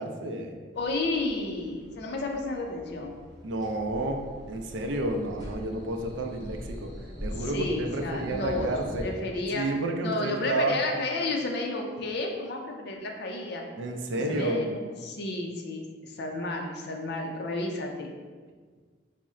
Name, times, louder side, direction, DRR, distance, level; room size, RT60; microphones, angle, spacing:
voice 1, 0.0-0.6 3.4-4.2 4.5-6.9 7.2-9.1 9.5-10.8 13.8-14.6, right 2 dB, 75° right, 3 dB, 0.4 m, -30 dB
voice 2, 0.7-3.1 7.4-9.7 10.0-13.6 14.1-18.1, left 2 dB, 60° left, 2 dB, 0.5 m, -32 dB
sound 1, 0.7-9.0, equal, 20° right, 0.7 m, -42 dB
4.0 x 2.1 x 3.6 m, 1.5 s
head